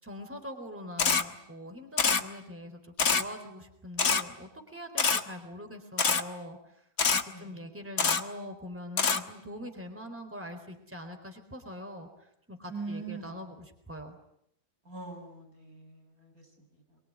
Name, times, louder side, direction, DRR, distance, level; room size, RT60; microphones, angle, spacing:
voice 1, 0.0-6.6 7.1-14.2, left 1 dB, 10° right, 5 dB, 4.1 m, -43 dB
Camera, 1.0-1.2 2.0-2.2 3.0-3.2 4.0-4.2 5.0-5.2 6.0-6.2 7.0-7.2 8.0-8.2 9.0-9.2, left 5 dB, 70° left, 2.1 m, -24 dB
voice 2, 12.7-13.4 14.8-17.0, right 4 dB, 80° right, 2 dB, 7.8 m, -42 dB
25.5 x 23.5 x 9.7 m, 0.75 s
omnidirectional pair, 1.5 m